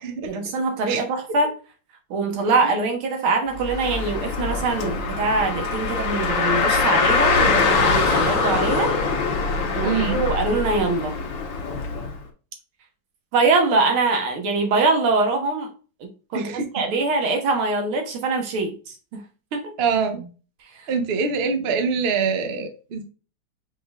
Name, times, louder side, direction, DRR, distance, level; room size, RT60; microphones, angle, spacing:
voice 1, 0.3-1.5 2.1-8.9 9.7-11.2 13.3-15.7 16.0-19.2 19.5-19.7 20.7-20.9, right 3 dB, 85° right, 3 dB, 2.1 m, -23 dB
Car, 3.6-12.1, left 4 dB, 65° left, 1.8 m, -23 dB
voice 2, 9.8-10.2 16.3-16.7 19.8-20.3 20.9-23.0, right 5 dB, 55° right, 6 dB, 0.6 m, -24 dB
5.9 x 3.8 x 2.3 m, 0.36 s
omnidirectional pair, 2.2 m